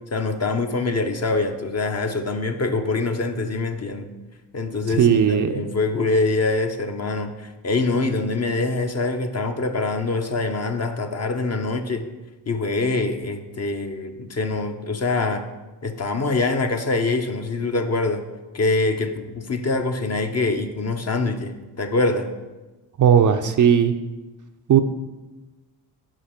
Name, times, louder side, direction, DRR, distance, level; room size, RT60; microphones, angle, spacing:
voice 1, 0.1-4.1 4.5-12.1 12.5-15.4 15.8-18.2 18.5-22.3, left 3 dB, 35° left, 6 dB, 0.8 m, -24 dB
voice 2, 5.0-5.5 23.0-23.9 24.7-24.8, right 8 dB, 40° right, 7 dB, 0.5 m, -16 dB
5.2 x 5.0 x 5.7 m, 1.2 s
supercardioid pair, 60°, 46 cm